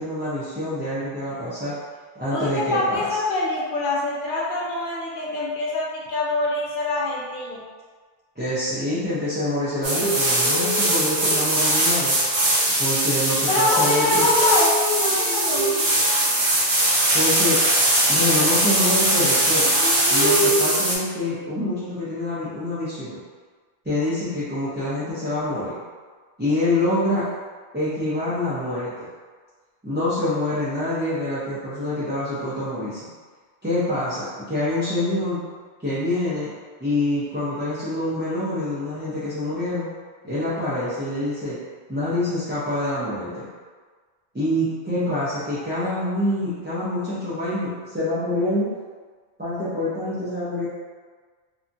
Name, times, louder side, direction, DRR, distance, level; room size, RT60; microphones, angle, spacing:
voice 1, 0.0-1.7 2.2-3.2 8.4-12.2 12.8-14.3 17.1-17.6 18.1-19.7 20.1-23.2 23.8-25.8 26.4-27.3 27.7-29.1 29.8-33.0 33.6-35.4 35.8-36.5 36.8-39.9 40.2-41.6 41.9-43.5 44.3-48.7 49.4-50.7, left 1 dB, 15° right, -12 dB, 0.3 m, -26 dB
voice 2, 2.3-7.6 13.5-14.7 15.0-15.8, left 2 dB, 55° left, -4 dB, 0.6 m, -24 dB
sound 1, 9.8-21.0, right 1 dB, 65° right, 1.0 m, -20 dB
2.7 x 2.3 x 2.6 m, 1.5 s
omnidirectional pair, 1.2 m